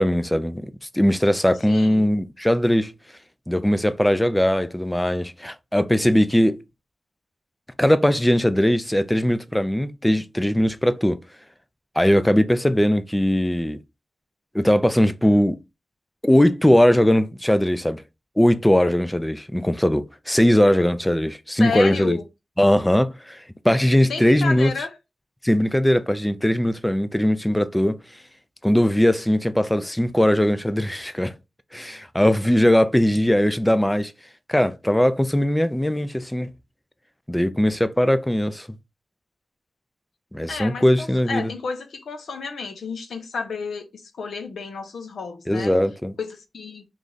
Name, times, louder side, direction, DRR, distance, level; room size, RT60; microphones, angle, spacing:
voice 1, 0.0-2.9 3.5-6.6 7.8-11.2 12.0-13.8 14.5-15.6 16.2-18.0 18.4-22.2 22.6-24.7 25.4-28.0 28.6-31.3 31.7-34.1 34.5-36.5 37.3-38.7 40.3-41.5 45.5-46.1, equal, 5° left, 0.4 m, -20 dB
voice 2, 1.7-2.1 21.6-22.3 24.1-25.0 40.5-45.7 46.2-46.9, left 5 dB, 85° left, 0.7 m, -31 dB
3.2 x 2.4 x 3.8 m
wide cardioid pair, 105°, 0 cm